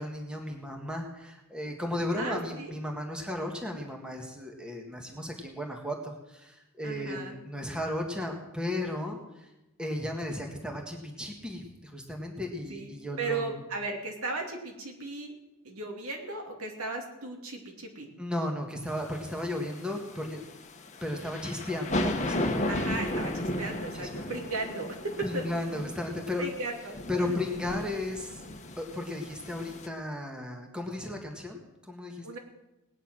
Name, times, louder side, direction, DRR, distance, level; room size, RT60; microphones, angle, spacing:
voice 1, 0.0-9.5 9.8-13.6 18.2-20.4 21.0-22.9 23.9-24.3 25.2-26.4 27.1-28.4 28.8-32.4, left 1 dB, 5° right, 1 dB, 1.7 m, -35 dB
voice 2, 2.2-2.7 6.8-7.4 12.7-15.3 15.6-18.1 22.7-25.4 26.4-27.0 32.2-32.4, right 3 dB, 70° right, 2 dB, 2.6 m, -36 dB
sound 1, 18.9-29.9, left 1 dB, 30° left, 1.3 m, -35 dB
18.5 x 9.8 x 6.2 m, 0.97 s
head